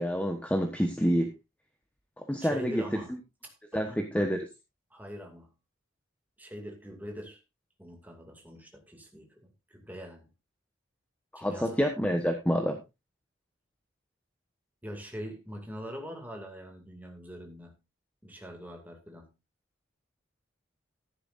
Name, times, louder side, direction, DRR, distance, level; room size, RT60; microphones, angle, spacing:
voice 1, 0.0-1.3 2.2-2.8 3.7-4.4 11.3-12.8, equal, 5° left, 1.2 m, -28 dB
voice 2, 2.4-3.1 3.4-4.3 4.9-5.5 6.4-7.4 7.8-10.3 11.4-11.8 14.8-17.8 18.2-19.3, equal, 10° right, 2.4 m, -43 dB
14.0 x 11.0 x 2.6 m
head